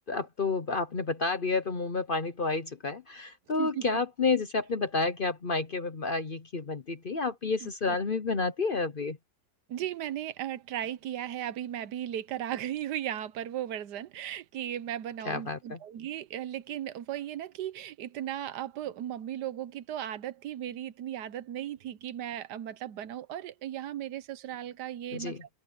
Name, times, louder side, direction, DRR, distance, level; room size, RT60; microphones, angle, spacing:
voice 1, 0.1-9.2 15.3-15.8 25.1-25.4, left 4 dB, 40° left, 0.8 m, -30 dB
voice 2, 7.6-8.0 9.7-25.6, right 11 dB, 80° right, 1.4 m, -36 dB
open air
omnidirectional pair, 1.8 m